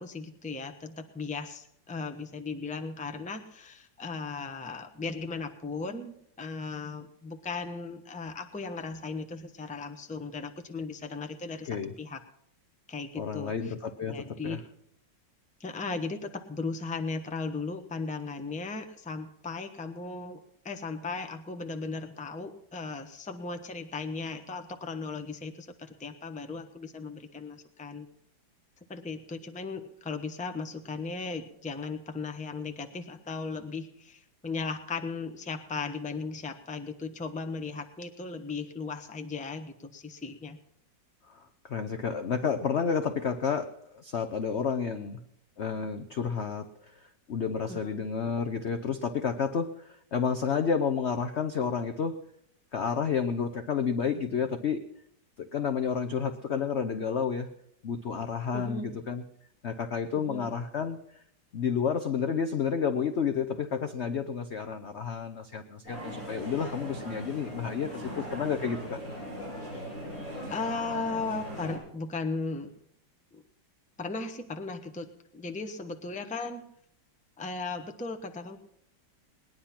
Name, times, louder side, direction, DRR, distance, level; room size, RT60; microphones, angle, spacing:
voice 1, 0.0-12.2 12.9-13.7 14.1-14.6 15.6-28.1 28.9-40.6 47.7-47.9 58.5-58.9 60.1-60.5 70.5-72.7 73.3-73.4 74.0-76.6 77.4-78.6, left 4 dB, 5° left, 7 dB, 0.6 m, -37 dB
voice 2, 13.2-14.6 41.3-45.2 45.6-46.7 47.3-52.2 52.7-54.8 55.4-57.5 57.8-59.2 59.6-61.0 61.5-69.0, left 6 dB, 60° left, 8 dB, 0.7 m, -30 dB
sound 1, 65.8-71.8, equal, 40° left, 7.9 m, -39 dB
19.5 x 10.0 x 5.8 m, 0.72 s
omnidirectional pair, 2.0 m